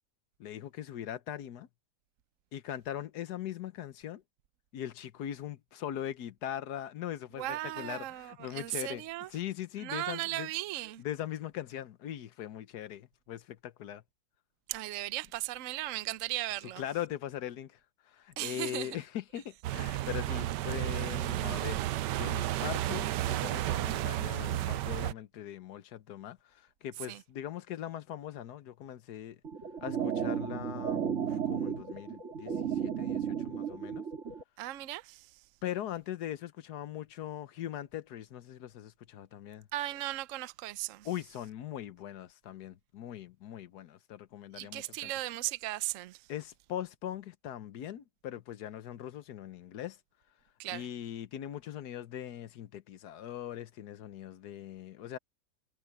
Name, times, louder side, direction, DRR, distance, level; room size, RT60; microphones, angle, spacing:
voice 1, 0.4-1.7 2.5-4.2 4.7-9.0 9.3-10.5 11.0-14.0 16.8-17.8 18.1-29.4 29.8-34.0 35.6-39.7 41.0-45.1 46.3-50.0 50.7-55.2, left 11 dB, 70° left, 1.4 m, -41 dB
voice 2, 7.4-9.3 9.8-11.0 14.7-16.8 18.4-18.9 27.1-27.2 34.6-35.3 39.7-41.1 44.5-46.2 50.6-50.9, right 16 dB, 60° right, 0.9 m, -37 dB
sound 1, 19.6-25.1, right 14 dB, 80° right, 1.2 m, -32 dB
sound 2, 29.4-34.4, right 8 dB, 45° right, 2.1 m, -34 dB
omnidirectional pair, 1.8 m